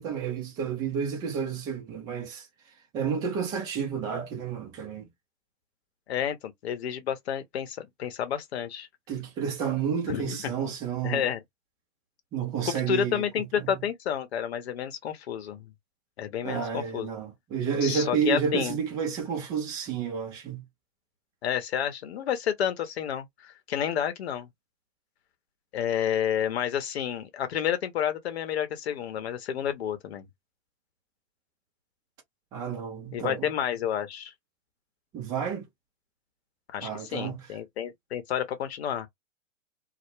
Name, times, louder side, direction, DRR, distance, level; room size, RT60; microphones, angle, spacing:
voice 1, 0.0-2.5 2.9-5.1 9.1-11.3 12.3-13.8 16.4-20.6 32.5-33.5 35.1-35.7 36.8-37.4, right 7 dB, 10° right, 0.4 m, -31 dB
voice 2, 6.1-8.9 10.1-10.5 11.0-11.4 12.6-15.7 16.2-17.1 17.8-18.8 21.4-24.5 25.7-30.3 33.1-34.3 36.7-39.1, left 9 dB, 55° left, 0.8 m, -30 dB
2.1 x 2.1 x 3.0 m
figure-of-eight pair, 120°, 39 cm